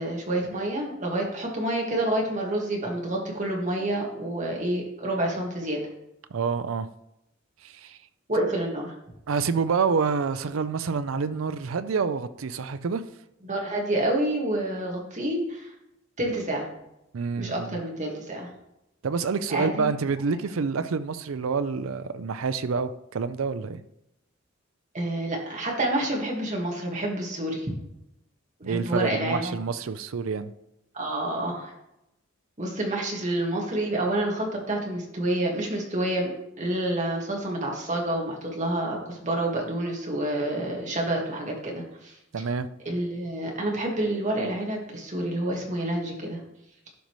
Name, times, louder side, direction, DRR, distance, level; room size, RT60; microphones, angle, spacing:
voice 1, 0.0-5.8 8.3-8.9 13.4-15.7 16.2-16.7 17.4-18.5 19.5-19.9 24.9-27.7 28.6-29.6 30.9-31.7 32.6-36.3 36.6-42.1 42.9-46.4, right 1 dB, 40° right, -1 dB, 1.7 m, -28 dB
voice 2, 6.3-6.9 7.6-8.0 9.3-13.0 17.1-17.8 19.0-23.8 28.6-30.5 42.3-42.7, right 5 dB, 85° right, 12 dB, 0.5 m, -27 dB
11.5 x 5.2 x 3.1 m, 0.86 s
head